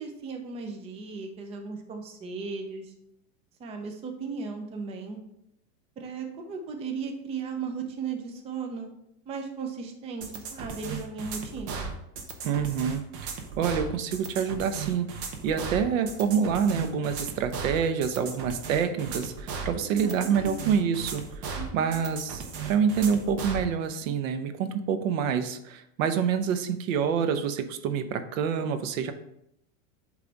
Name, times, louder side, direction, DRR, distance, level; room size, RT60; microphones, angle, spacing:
voice 1, 0.0-2.9 3.6-5.2 6.0-8.9 9.3-12.0 19.8-20.8 21.5-22.0, right 5 dB, 15° right, 4 dB, 0.5 m, -36 dB
sound 1, 10.2-23.7, right 5 dB, 55° right, 1.2 m, -36 dB
voice 2, 12.4-13.0 13.6-15.1 15.4-21.2 21.7-29.1, right 7 dB, 70° right, 9 dB, 0.9 m, -27 dB
8.5 x 3.3 x 4.0 m, 0.78 s
supercardioid pair, 145°, 41 cm